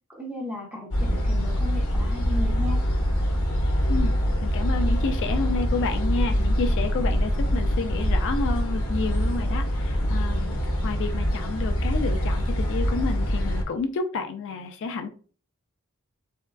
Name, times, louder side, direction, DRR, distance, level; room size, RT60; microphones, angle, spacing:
voice 1, 0.1-2.8, left 2 dB, 5° right, -2 dB, 0.8 m, -35 dB
sound 1, 0.9-13.6, equal, 75° left, 0.7 m, -24 dB
voice 2, 4.4-15.1, left 4 dB, 60° left, 6 dB, 0.3 m, -30 dB
3.5 x 2.2 x 2.2 m, 0.40 s
head